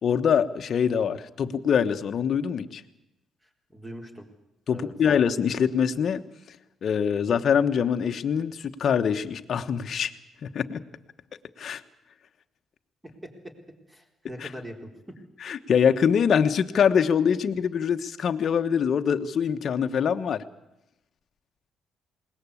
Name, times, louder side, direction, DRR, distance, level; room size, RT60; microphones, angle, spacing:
voice 1, 0.0-2.8 4.7-6.2 6.8-10.1 10.4-10.8 11.6-11.8 14.4-14.5 15.4-20.4, left 7 dB, 55° left, 8 dB, 1.1 m, -24 dB
voice 2, 3.4-4.3 4.7-4.9 13.2-13.6 13.9-14.9, equal, 10° right, 3 dB, 4.1 m, -42 dB
20.5 x 18.5 x 8.4 m, 0.91 s
cardioid pair, 90°, 0 cm